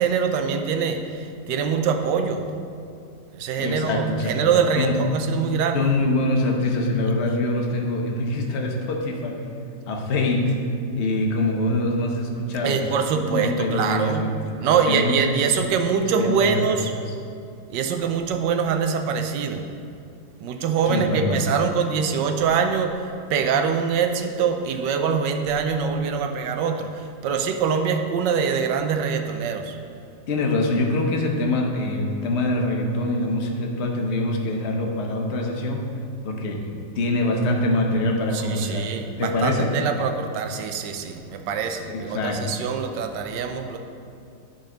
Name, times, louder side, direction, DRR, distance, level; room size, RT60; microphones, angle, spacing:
voice 1, 0.0-2.5 3.3-5.8 12.6-14.3 14.6-16.9 17.7-19.7 20.4-29.8 38.3-43.8, right 6 dB, 75° right, 5 dB, 1.2 m, -24 dB
voice 2, 3.6-4.4 4.8-5.0 5.7-9.4 9.9-10.5 11.0-12.9 13.2-14.5 14.9-15.4 16.0-16.7 17.1-17.2 20.8-21.4 30.3-35.9 36.2-38.9 39.2-39.7 41.8-42.6, left 2 dB, 50° left, 1 dB, 0.9 m, -24 dB
9.5 x 4.3 x 5.0 m, 2.5 s
omnidirectional pair, 2.0 m